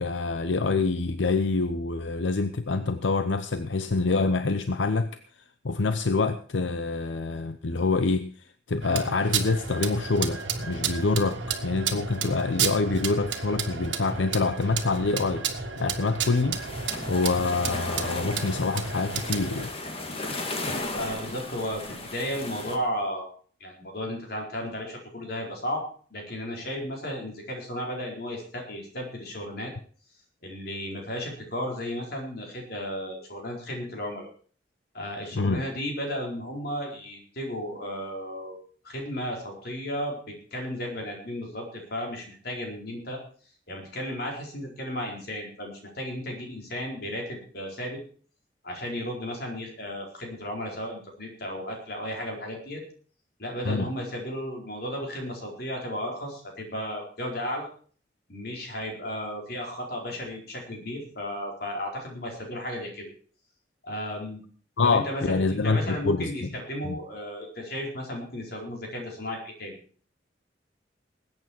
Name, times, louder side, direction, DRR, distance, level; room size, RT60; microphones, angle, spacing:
voice 1, 0.0-5.1 5.6-8.3 8.7-16.6 17.1-19.7 35.3-35.6 53.6-53.9 64.8-66.5 66.8-67.0, left 3 dB, 85° left, 10 dB, 0.7 m, -26 dB
sound 1, 8.8-19.7, right 6 dB, 85° right, 1.7 m, -32 dB
sound 2, 16.5-22.8, left 2 dB, 30° left, 1.8 m, -35 dB
voice 2, 20.9-23.3 23.6-25.8 26.1-29.7 30.4-34.3 34.9-38.6 38.8-43.2 43.7-48.0 48.6-52.8 53.4-57.7 58.3-63.1 63.8-64.4 64.8-69.8, equal, 60° left, 0 dB, 4.5 m, -34 dB
20.0 x 9.0 x 4.5 m, 0.44 s
head